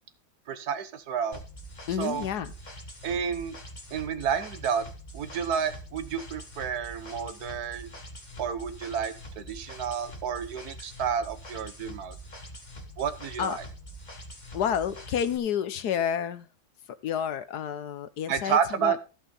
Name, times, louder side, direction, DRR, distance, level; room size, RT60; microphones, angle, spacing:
voice 1, 0.5-1.4 2.0-2.2 3.0-3.6 3.9-4.8 5.1-7.9 8.4-12.2 13.0-13.6 18.3-19.0, right 7 dB, 55° right, 12 dB, 1.5 m, -30 dB
sound 1, 1.3-15.4, equal, 25° left, 1.9 m, -44 dB
voice 2, 1.9-2.5 13.4-13.6 14.5-16.5 17.0-19.0, left 8 dB, 65° left, 13 dB, 1.2 m, -29 dB
15.0 x 5.7 x 5.4 m, 0.32 s
omnidirectional pair, 2.1 m